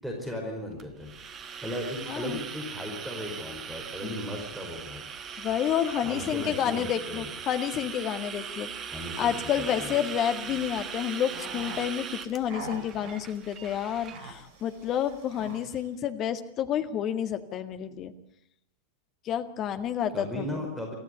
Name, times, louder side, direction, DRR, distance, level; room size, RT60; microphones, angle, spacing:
voice 1, 0.0-5.0 6.0-7.3 8.9-9.9 20.1-20.9, equal, 5° right, 2 dB, 5.2 m, -37 dB
sound 1, 0.8-14.2, right 7 dB, 25° right, 1.3 m, -39 dB
voice 2, 2.1-2.4 4.0-4.2 5.4-8.7 9.2-18.1 19.2-20.7, left 9 dB, 35° left, 8 dB, 1.7 m, -30 dB
sound 2, 10.3-15.9, right 3 dB, 45° right, 3.0 m, -45 dB
24.5 x 15.0 x 8.2 m, 0.74 s
figure-of-eight pair, 90°, 0 cm